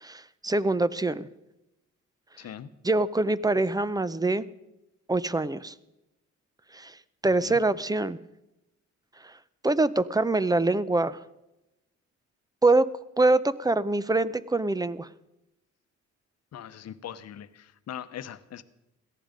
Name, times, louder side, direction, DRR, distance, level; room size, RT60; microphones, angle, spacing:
voice 1, 0.0-1.3 2.8-4.4 5.1-5.7 6.7-6.9 7.2-8.2 9.2-9.3 9.6-11.2 12.6-12.9 13.2-15.1, right 2 dB, 15° right, 17 dB, 0.6 m, -24 dB
voice 2, 2.4-2.7 7.2-7.6 16.5-18.6, left 9 dB, 60° left, 12 dB, 1.0 m, -41 dB
17.5 x 13.5 x 5.2 m, 0.94 s
cardioid pair, 90°, 30 cm